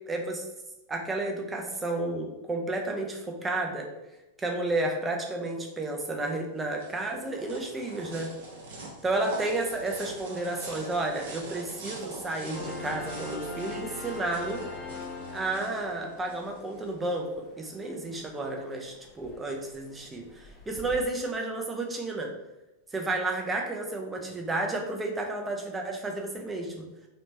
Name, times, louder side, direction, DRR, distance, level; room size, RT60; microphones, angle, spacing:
voice 1, 0.1-0.5 0.9-3.9 4.4-8.3 9.0-14.6 15.3-22.3 22.9-26.8, right 2 dB, 15° right, 1 dB, 0.6 m, -32 dB
sound 1, 6.3-17.1, right 2 dB, 60° right, 0.8 m, -43 dB
sound 2, 12.5-21.0, left 3 dB, 30° left, 0.5 m, -43 dB
3.2 x 3.1 x 2.7 m, 0.98 s
figure-of-eight pair, 90°, 0 cm